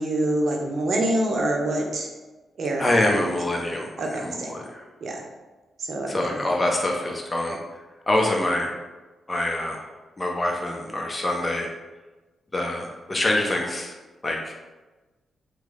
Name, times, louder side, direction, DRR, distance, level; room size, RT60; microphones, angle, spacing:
voice 1, 0.0-2.1 2.6-3.2 4.0-4.5 5.0-5.2 5.8-6.5, right 1 dB, 65° right, 1 dB, 0.7 m, -26 dB
voice 2, 2.8-4.8 6.1-7.6 8.1-8.7 9.3-9.9 10.2-11.7 12.5-13.9 14.2-14.5, left 1 dB, 25° left, 0 dB, 0.7 m, -25 dB
3.0 x 2.1 x 3.7 m, 1.2 s
cardioid pair, 60°, 0 cm